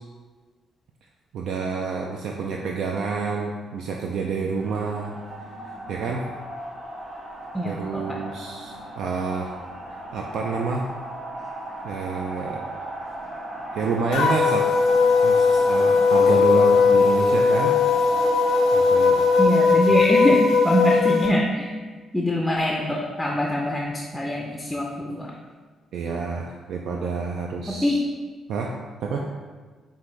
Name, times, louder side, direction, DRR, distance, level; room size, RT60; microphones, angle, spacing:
voice 1, 1.3-5.1 5.9-6.3 7.6-9.5 10.1-10.9 11.8-12.6 13.7-14.7 15.2-17.8 18.7-19.2 19.9-20.0 25.9-28.0 28.5-28.7 29.0-29.3, right 4 dB, 75° right, 0 dB, 0.3 m, -28 dB
sound 1, 4.5-19.4, right 1 dB, 55° right, 1.0 m, -36 dB
voice 2, 7.5-8.2 19.4-21.7 22.1-25.3 27.8-28.0, equal, 10° left, -1 dB, 0.4 m, -24 dB
sound 2, 14.1-21.3, left 5 dB, 85° left, 0.5 m, -18 dB
5.3 x 2.5 x 3.2 m, 1.4 s
cardioid pair, 90°, 0 cm